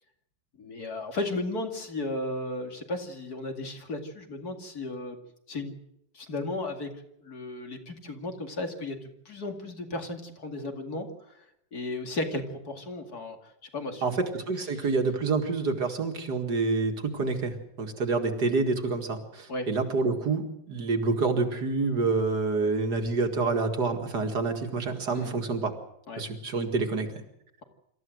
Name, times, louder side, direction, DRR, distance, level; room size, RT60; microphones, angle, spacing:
voice 1, 0.6-5.2 5.5-5.8 6.1-6.9 7.2-11.4 11.7-13.4 13.7-14.2 14.7-14.9 19.5-19.7 25.1-25.3 26.1-26.2, left 2 dB, 55° left, 4 dB, 2.8 m, -35 dB
voice 2, 14.0-25.7 26.2-27.1, right 3 dB, 60° right, 5 dB, 2.6 m, -27 dB
26.5 x 14.0 x 7.9 m, 0.79 s
omnidirectional pair, 2.0 m